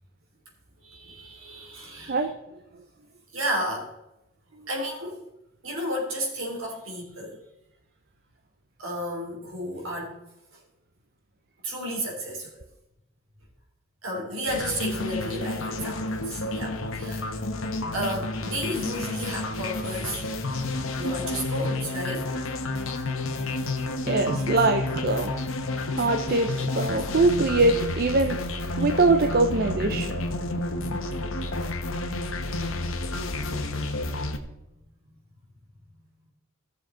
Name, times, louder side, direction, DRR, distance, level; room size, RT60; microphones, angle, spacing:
voice 1, 0.8-2.2 3.3-3.9 4.7-5.2 5.6-7.4 8.8-10.1 10.5-10.6 11.6-12.6 14.0-17.4 17.9-20.2 21.0-22.3 34.7-34.8, equal, 70° right, 0 dB, 3.3 m, -32 dB
sound 1, 14.5-34.4, left 2 dB, 70° left, 1.1 m, -30 dB
voice 2, 24.1-25.4 26.0-28.4 28.8-30.2, right 3 dB, 45° right, 5 dB, 0.6 m, -23 dB
15.0 x 6.9 x 3.8 m, 0.93 s
head